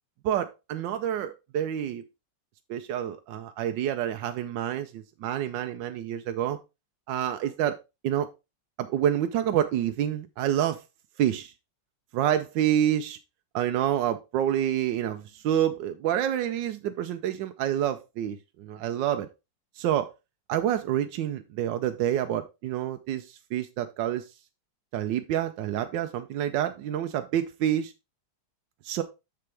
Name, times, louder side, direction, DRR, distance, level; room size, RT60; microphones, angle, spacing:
voice 1, 0.2-2.0 2.7-6.6 7.1-7.8 8.0-8.3 8.8-10.8 11.2-11.5 12.1-13.2 13.5-19.3 19.8-20.1 20.5-24.2 24.9-27.9 28.8-29.0, right 11 dB, 80° right, 8 dB, 1.3 m, -28 dB
7.1 x 6.9 x 3.3 m, 0.25 s
omnidirectional pair, 2.0 m